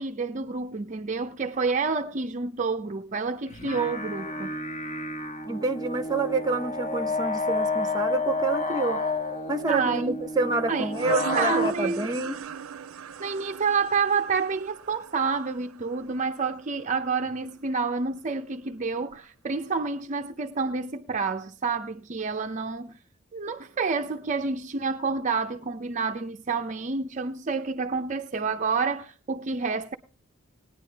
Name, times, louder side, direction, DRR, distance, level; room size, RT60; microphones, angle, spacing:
voice 1, 0.0-4.5 9.7-10.2 10.7-12.1 13.2-23.0 23.3-30.0, right 4 dB, 35° right, 0.6 m, -29 dB
sound 1, 3.5-11.7, left 3 dB, 35° left, 1.4 m, -30 dB
voice 2, 5.5-9.0 9.5-12.4, right 3 dB, 20° right, 0.9 m, -28 dB
sound 2, 10.9-16.3, right 7 dB, 85° right, 0.5 m, -38 dB
19.5 x 10.0 x 3.3 m
head